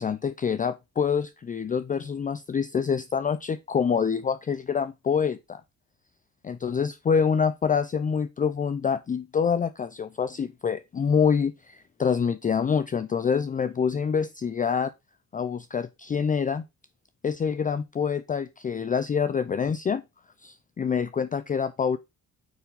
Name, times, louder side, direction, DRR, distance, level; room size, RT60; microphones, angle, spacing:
voice 1, 0.0-5.6 6.4-14.9 15.3-16.6 17.2-20.0 20.4-22.0, left 6 dB, 25° left, 0.5 m, -26 dB
9.2 x 4.5 x 4.0 m
cardioid pair, 90°, 30 cm